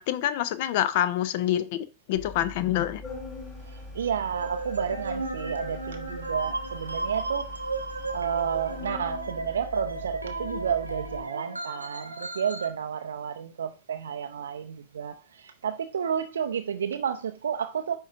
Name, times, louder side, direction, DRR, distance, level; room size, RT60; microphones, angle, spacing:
voice 1, 0.0-3.0, left 12 dB, 50° left, 0.5 m, -26 dB
Organ, 2.1-11.2, left 2 dB, 20° left, 3.2 m, -42 dB
voice 2, 3.7-7.5 8.1-18.0, right 8 dB, 65° right, 0.4 m, -31 dB
sound 1, 4.3-12.7, right 2 dB, 85° right, 0.9 m, -34 dB
10.0 x 3.8 x 2.6 m
figure-of-eight pair, 90°, 0 cm